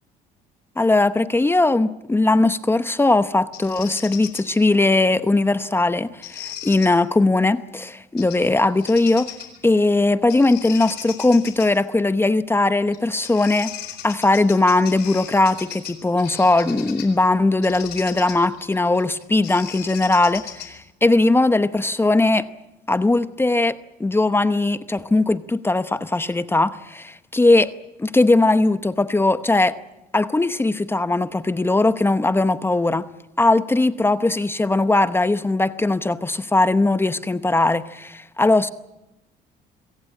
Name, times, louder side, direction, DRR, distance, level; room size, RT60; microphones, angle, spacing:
voice 1, 0.8-9.3 9.6-13.7 14.0-20.7 21.0-22.5 22.9-27.7 28.0-29.8 30.1-33.1 33.4-38.7, left 2 dB, 15° left, 13 dB, 0.8 m, -19 dB
Bird vocalization bird call bird song, 3.5-4.5 6.2-6.9 8.2-8.5 8.8-9.6 10.3-11.7 12.9-13.0 13.2-17.2 17.6-20.9, left 11 dB, 75° left, 4.1 m, -37 dB
26.0 x 17.0 x 8.9 m, 0.94 s
cardioid pair, 110°, 17 cm